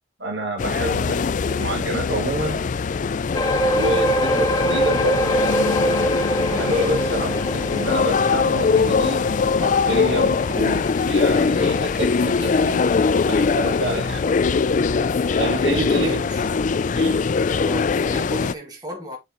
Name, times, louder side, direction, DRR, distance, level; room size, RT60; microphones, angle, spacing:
voice 1, 0.2-2.6 3.7-6.1 6.5-9.2 9.6-13.0 13.3-14.3 15.4-16.2 16.9-17.2, right 1 dB, 70° right, 2.4 m, -28 dB
sound 1, 0.6-18.5, left 5 dB, 40° left, 0.3 m, -22 dB
sound 2, 3.3-16.0 16.4-16.6 17.1-17.2, equal, 20° left, 0.7 m, -26 dB
voice 2, 15.6-16.4 17.6-19.2, equal, 20° right, 2.1 m, -34 dB
7.5 x 4.3 x 3.7 m
head